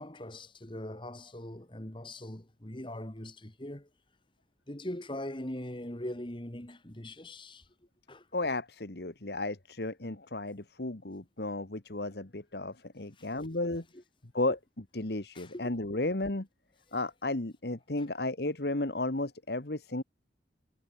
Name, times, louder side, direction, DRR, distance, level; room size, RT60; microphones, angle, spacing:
voice 1, 0.0-3.9 4.7-7.6 8.1-8.2 13.2-13.3 13.6-13.7 15.3-15.6, left 1 dB, 30° left, 2.2 m, -41 dB
voice 2, 8.3-13.8 14.3-16.5 16.9-20.0, left 2 dB, 60° left, 1.6 m, -34 dB
head